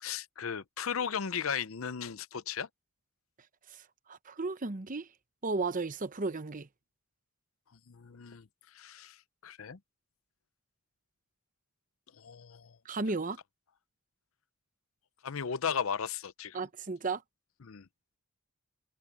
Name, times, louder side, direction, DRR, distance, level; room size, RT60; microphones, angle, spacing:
voice 1, 0.0-2.7 7.9-9.8 12.1-12.8 15.2-16.7 17.6-17.9, left 7 dB, 70° left, 0.7 m, -36 dB
voice 2, 4.1-5.1 5.4-6.7 12.8-13.4 16.5-17.2, right 3 dB, 40° right, 0.8 m, -34 dB
head